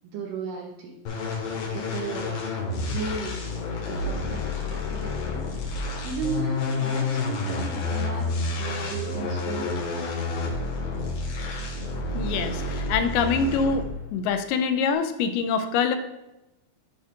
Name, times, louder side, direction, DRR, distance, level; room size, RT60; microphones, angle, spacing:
voice 1, 0.0-1.0 1.7-3.5 3.8-5.5 6.0-8.3 8.6-10.1, right 4 dB, 80° right, 1 dB, 2.0 m, -35 dB
sound 1, 1.1-14.0, left 3 dB, 65° left, 2.9 m, -29 dB
voice 2, 12.1-13.8 14.1-16.0, left 5 dB, 85° left, 7 dB, 2.4 m, -25 dB
11.0 x 5.4 x 2.4 m, 0.98 s
omnidirectional pair, 4.5 m